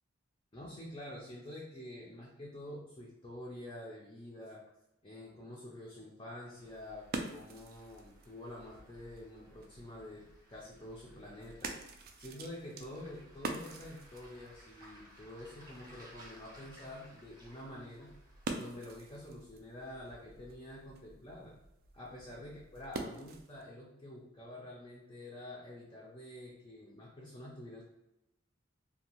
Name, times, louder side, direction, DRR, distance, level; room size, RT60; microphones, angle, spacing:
voice 1, 0.5-4.6 5.0-18.1 18.5-21.6 21.9-27.8, left 1 dB, 20° left, -4 dB, 0.4 m, -48 dB
Waves surf, 6.4-18.4, right 1 dB, 20° right, 0.7 m, -61 dB
sound 1, 6.5-23.7, right 3 dB, 50° right, 0.3 m, -47 dB
2.6 x 2.2 x 2.9 m, 0.91 s
head